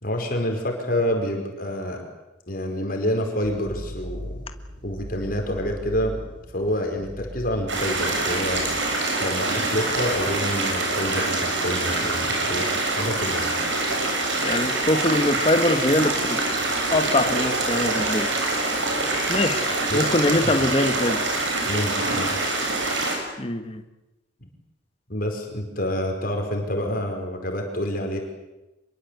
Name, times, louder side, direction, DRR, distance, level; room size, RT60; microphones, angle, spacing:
voice 1, 0.0-2.0 2.5-4.4 4.8-6.2 6.5-8.7 9.2-13.5 19.9-20.3 21.6-22.3 24.4-24.5 25.1-28.2, equal, 45° left, 2 dB, 5.0 m, -28 dB
sound 1, 3.4-8.8, left 1 dB, 25° right, 5.5 m, -39 dB
sound 2, 7.7-23.2, right 2 dB, 75° right, 7.1 m, -25 dB
voice 2, 14.4-16.4 16.9-18.3 19.3-19.6 19.9-21.2 23.4-23.8, left 1 dB, 30° left, 7 dB, 1.5 m, -23 dB
26.0 x 22.5 x 8.3 m, 0.99 s
head